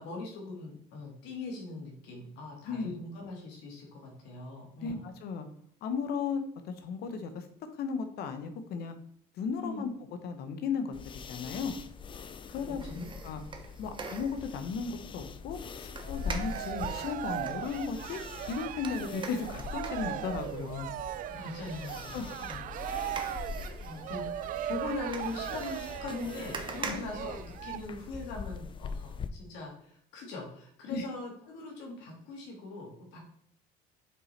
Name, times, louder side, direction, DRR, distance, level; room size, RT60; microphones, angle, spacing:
voice 1, 0.0-5.0 9.6-9.9 12.5-13.1 21.3-22.2 22.4-23.1 23.5-33.2, left 3 dB, 80° left, 0 dB, 2.2 m, -41 dB
voice 2, 4.8-5.5 5.8-7.5 7.8-8.9 9.4-9.9 10.2-11.7 12.5-13.4 13.8-18.2 18.5-20.9 22.1-22.5 26.9-27.0 30.9-31.1, left 5 dB, 65° left, 8 dB, 0.9 m, -35 dB
sound 1, 10.9-29.3, left 5 dB, 30° left, 0.4 m, -43 dB
sound 2, 12.8-14.6 16.0-17.6 18.8-21.4 21.8-28.0 28.4-28.5, right 4 dB, 25° right, 0.9 m, -44 dB
Cheering, 16.0-27.8, right 12 dB, 50° right, 0.4 m, -38 dB
5.3 x 4.9 x 4.3 m, 0.63 s
cardioid pair, 110°, 18 cm